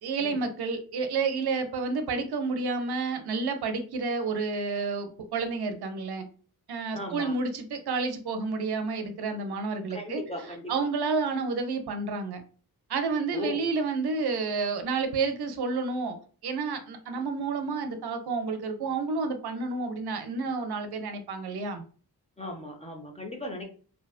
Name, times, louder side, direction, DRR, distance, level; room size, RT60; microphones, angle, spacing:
voice 1, 0.0-6.2 6.7-10.2 10.7-12.4 12.9-16.2 16.4-21.8, right 4 dB, 75° right, 7 dB, 0.6 m, -30 dB
voice 2, 6.9-7.4 9.9-10.9 13.3-13.7 22.4-23.6, left 1 dB, 15° left, 2 dB, 0.5 m, -37 dB
2.6 x 2.2 x 2.3 m, 0.41 s
wide cardioid pair, 120°, 38 cm